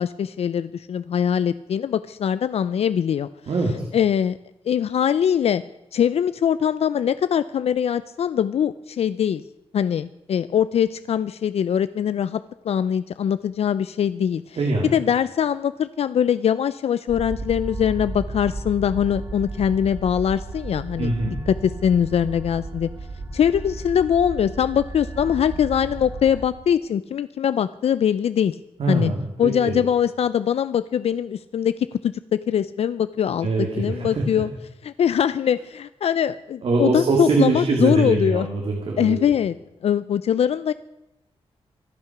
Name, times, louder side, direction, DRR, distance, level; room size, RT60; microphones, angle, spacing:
voice 1, 0.0-3.3 3.9-4.4 4.7-5.6 5.9-9.4 9.7-14.6 14.9-21.4 21.6-22.9 23.3-28.6 28.9-29.1 29.4-31.7 32.0-33.5 33.8-34.5 34.8-38.5 39.0-39.5 39.8-40.7, left 8 dB, 75° left, 14 dB, 0.4 m, -22 dB
voice 2, 3.5-3.9 14.6-14.9 21.0-21.4 28.8-29.8 33.4-34.4 36.6-39.2, right 3 dB, 65° right, 1 dB, 2.5 m, -23 dB
sound 1, 17.1-26.5, right 3 dB, 25° right, 2.6 m, -34 dB
25.0 x 8.8 x 6.0 m, 0.93 s
wide cardioid pair, 140°, 11 cm